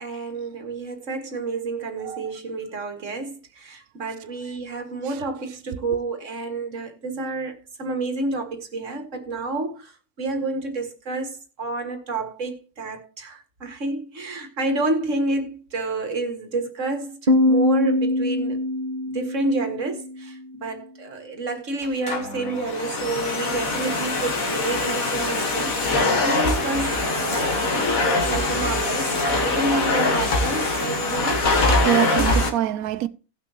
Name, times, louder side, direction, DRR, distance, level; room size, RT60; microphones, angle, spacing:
voice 1, 0.0-9.9 10.2-18.6 19.1-27.6 28.3-31.4, right 3 dB, 60° right, 2.1 m, -29 dB
voice 2, 2.0-2.3 5.0-5.2 5.9-6.0 31.8-33.1, right 12 dB, 85° right, 1.1 m, -25 dB
Piano, 17.3-20.7, left 1 dB, 35° right, 1.3 m, -23 dB
Domestic sounds home sounds, 21.8-32.5, left 2 dB, 75° left, 2.0 m, -23 dB
18.0 x 6.1 x 2.9 m
omnidirectional pair, 1.5 m